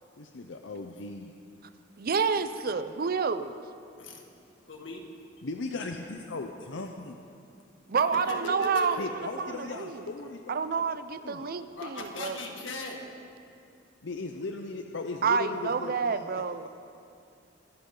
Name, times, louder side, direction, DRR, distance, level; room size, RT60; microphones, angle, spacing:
voice 1, 0.2-1.3 5.4-7.2 9.0-11.5 14.0-16.7, left 3 dB, 70° left, 4 dB, 0.7 m, -38 dB
voice 2, 2.0-3.5 7.9-10.1 10.5-12.4 15.2-16.7, right 5 dB, 50° right, 12 dB, 0.6 m, -29 dB
voice 3, 4.7-5.0 8.1-9.1 11.7-13.1, left 2 dB, 90° left, 1 dB, 2.0 m, -38 dB
25.0 x 11.0 x 3.9 m, 2.5 s
head